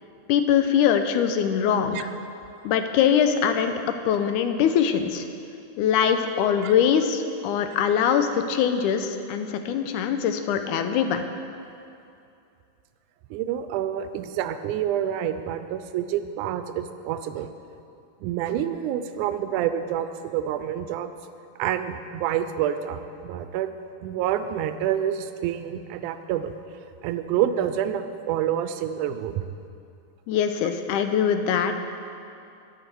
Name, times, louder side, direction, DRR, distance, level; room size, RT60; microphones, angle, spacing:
voice 1, 0.3-2.1 2.6-3.7 4.1-5.3 5.8-11.2 30.3-31.7, left 8 dB, 90° left, 8 dB, 2.2 m, -22 dB
voice 2, 13.3-17.5 18.2-21.1 21.6-23.7 24.0-26.5 27.0-29.4, right 10 dB, 90° right, 10 dB, 2.1 m, -27 dB
11.5 x 9.5 x 4.6 m, 2.6 s
omnidirectional pair, 3.5 m